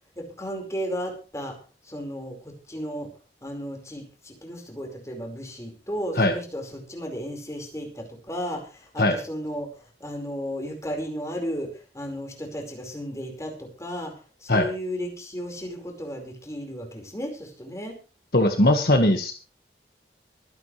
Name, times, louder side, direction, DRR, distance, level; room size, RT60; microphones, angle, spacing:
voice 1, 0.2-1.6 1.8-3.1 3.4-18.0, equal, 15° left, 2 dB, 4.8 m, -34 dB
voice 2, 18.3-19.3, left 1 dB, 60° left, 5 dB, 1.6 m, -19 dB
24.0 x 10.0 x 3.3 m, 0.35 s
head